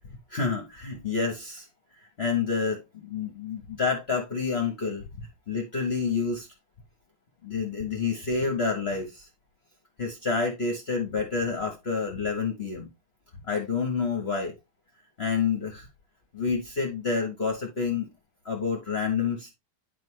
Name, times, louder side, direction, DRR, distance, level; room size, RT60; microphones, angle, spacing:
voice 1, 0.3-1.7 2.2-5.1 5.5-6.5 7.4-9.3 10.0-12.9 13.5-14.5 15.2-15.9 16.3-18.1 18.4-19.5, left 5 dB, 40° left, 1.2 m, -28 dB
9.4 x 4.7 x 3.2 m
omnidirectional pair, 1.9 m